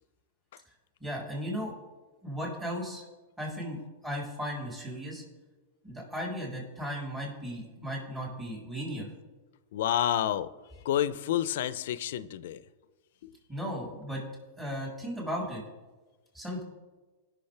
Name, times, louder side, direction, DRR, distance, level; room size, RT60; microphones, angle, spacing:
voice 1, 1.0-1.7 2.2-3.0 3.4-3.8 4.0-5.2 5.8-9.1 13.5-14.2 14.6-15.6 16.3-16.6, equal, 10° right, -4 dB, 3.4 m, -36 dB
voice 2, 9.7-10.5 10.8-12.6 13.2-13.3, left 11 dB, 70° left, 16 dB, 0.5 m, -29 dB
18.0 x 6.2 x 3.3 m, 1.3 s
hypercardioid pair, 125°, 0 cm